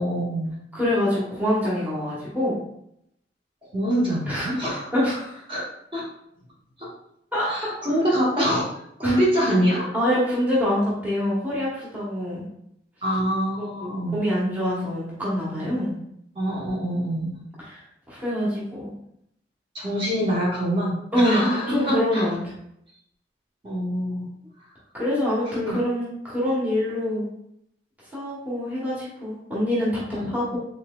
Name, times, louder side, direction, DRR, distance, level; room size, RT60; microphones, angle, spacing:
voice 1, 0.0-0.6 3.7-4.8 5.5-5.6 5.9-6.0 6.8-6.9 7.5-8.6 9.0-9.9 13.0-14.2 16.3-17.4 19.7-22.2 23.6-24.3 25.5-25.8 30.1-30.3, equal, 30° right, -5 dB, 1.2 m, -25 dB
voice 2, 0.7-2.6 4.3-5.4 7.3-7.7 9.0-9.2 9.9-12.5 13.6-15.9 17.6-18.9 21.1-22.5 24.9-27.3 28.1-30.0 30.3-30.6, left 1 dB, 10° right, -8 dB, 1.1 m, -25 dB
4.1 x 3.7 x 2.4 m, 0.76 s
head